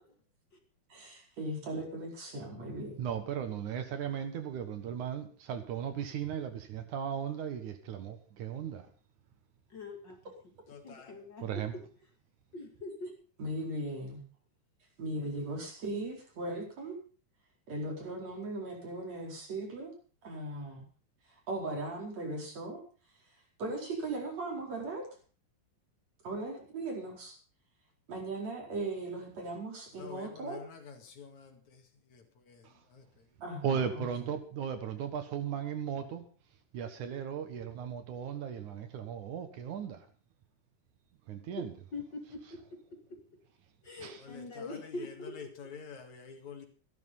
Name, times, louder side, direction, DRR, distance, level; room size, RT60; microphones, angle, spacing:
voice 1, 0.9-3.0 13.4-14.2 15.0-17.0 17.7-19.9 20.2-20.8 21.5-22.8 23.6-25.1 26.2-27.4 28.1-30.6 33.4-34.3, right 2 dB, 55° right, 5.8 m, -38 dB
voice 2, 3.0-8.9 11.4-11.7 32.6-32.7 33.6-36.2 36.7-40.1 41.3-41.7 44.0-44.2, right 8 dB, 75° right, 3.0 m, -36 dB
voice 3, 9.7-10.2 10.8-11.8 12.5-13.1 41.6-43.4 43.8-45.7, left 2 dB, 35° left, 2.7 m, -43 dB
voice 4, 10.7-11.1 30.0-31.6 32.1-32.2 32.5-32.6 32.9-33.0 44.2-44.4 45.6-46.7, left 6 dB, 65° left, 3.5 m, -48 dB
15.0 x 12.0 x 5.5 m
omnidirectional pair, 3.6 m